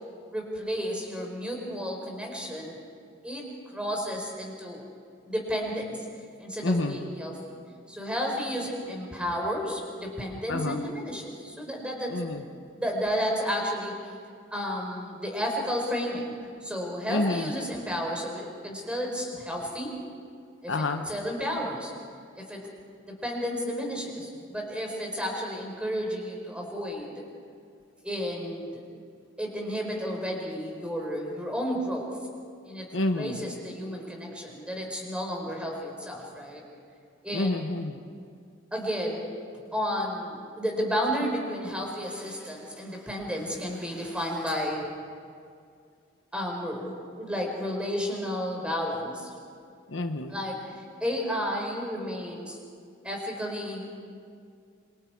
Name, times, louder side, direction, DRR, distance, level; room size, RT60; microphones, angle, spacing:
voice 1, 0.3-2.8 3.2-4.8 5.3-6.0 6.4-7.6 7.9-12.5 12.7-13.9 14.5-16.3 16.6-19.9 20.6-20.7 21.1-21.9 22.4-22.6 23.1-27.2 28.0-28.8 29.4-32.1 32.6-32.9 33.2-36.6 37.2-37.6 38.7-39.3 39.7-44.9 46.3-49.3 50.3-52.6 53.0-54.0, equal, 5° right, 0 dB, 4.3 m, -32 dB
voice 2, 6.6-7.0 10.5-10.8 12.1-12.4 17.1-17.5 20.7-21.0 32.9-33.4 37.3-38.0 49.9-50.3, left 2 dB, 70° left, 6 dB, 1.1 m, -28 dB
27.0 x 23.5 x 4.7 m, 2.3 s
head